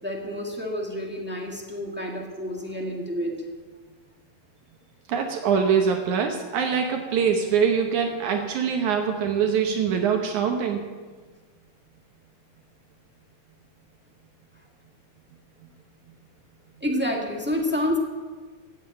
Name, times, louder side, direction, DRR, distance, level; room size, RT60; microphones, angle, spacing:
voice 1, 0.0-3.5 16.8-18.0, left 1 dB, 5° right, 0 dB, 0.9 m, -29 dB
voice 2, 5.1-10.8, right 6 dB, 70° right, 4 dB, 2.4 m, -23 dB
16.0 x 9.3 x 7.8 m, 1.4 s
omnidirectional pair, 3.7 m